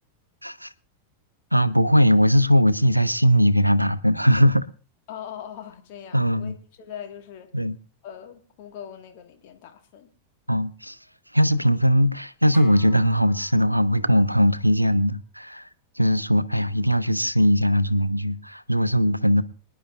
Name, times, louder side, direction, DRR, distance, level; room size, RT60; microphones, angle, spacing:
voice 1, 1.5-4.6 6.1-6.5 7.5-7.8 10.5-11.0 11.3-15.7 16.0-19.4, equal, 90° right, 0.6 m, -20 dB
voice 2, 5.1-7.5 8.0-10.1, left 9 dB, 50° left, 1.7 m, -41 dB
sound 1, 12.5-14.3, left 4 dB, 10° left, 3.1 m, -49 dB
26.0 x 10.0 x 2.5 m
figure-of-eight pair, 90°, 0 cm